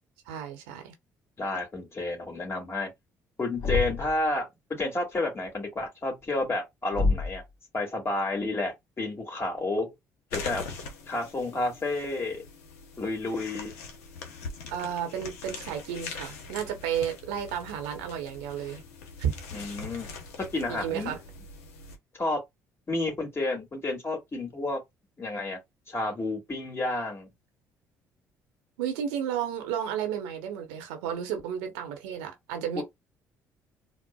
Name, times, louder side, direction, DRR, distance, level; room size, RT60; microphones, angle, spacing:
voice 1, 0.3-0.9 14.7-18.8 19.2-19.3 20.7-21.2 28.8-32.8, right 9 dB, 85° right, 0.8 m, -32 dB
voice 2, 1.4-2.9 3.4-7.4 7.7-9.9 10.3-10.6 11.1-12.4 13.0-13.7 19.5-20.1 20.5-21.2 22.2-22.4 22.9-24.8 25.2-25.6 25.9-27.3 32.8-32.9, left 2 dB, 35° left, 1.9 m, -30 dB
Thump thud, 3.6-4.2 6.9-7.5, left 3 dB, 65° left, 1.2 m, -27 dB
sound 1, 10.3-22.0, left 4 dB, 90° left, 0.8 m, -42 dB
4.2 x 2.1 x 2.2 m
hypercardioid pair, 60°, 8 cm